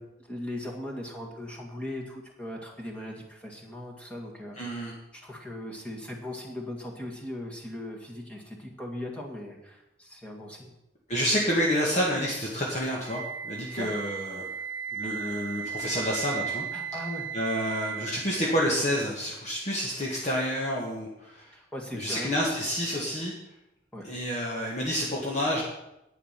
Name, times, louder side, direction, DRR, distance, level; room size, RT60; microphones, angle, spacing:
voice 1, 0.0-10.7 13.7-13.9 16.7-17.3 21.5-22.4 23.9-24.1, left 1 dB, 5° left, -1 dB, 1.9 m, -39 dB
voice 2, 4.6-4.9 11.1-14.4 14.9-16.6 17.3-21.5 21.9-23.3 24.0-25.6, equal, 35° left, -3 dB, 1.9 m, -29 dB
Wind instrument woodwind instrument, 13.0-19.0, right 8 dB, 85° right, 0.5 m, -36 dB
11.0 x 8.9 x 5.9 m, 0.87 s
head